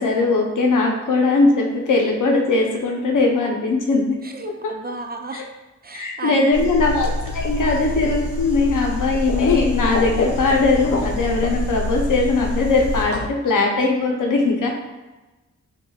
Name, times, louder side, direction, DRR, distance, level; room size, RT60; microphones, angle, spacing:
voice 1, 0.0-4.2 5.3-5.4 5.9-14.7, left 3 dB, 90° left, 0 dB, 0.8 m, -20 dB
voice 2, 4.2-5.5 5.8-6.7, right 3 dB, 30° right, 4 dB, 0.4 m, -33 dB
sound 1, 6.5-13.0, equal, 5° right, 0.9 m, -28 dB
sound 2, 6.8-13.3, left 5 dB, 50° left, 0.4 m, -29 dB
6.0 x 2.5 x 2.4 m, 1.1 s
wide cardioid pair, 95°, 30 cm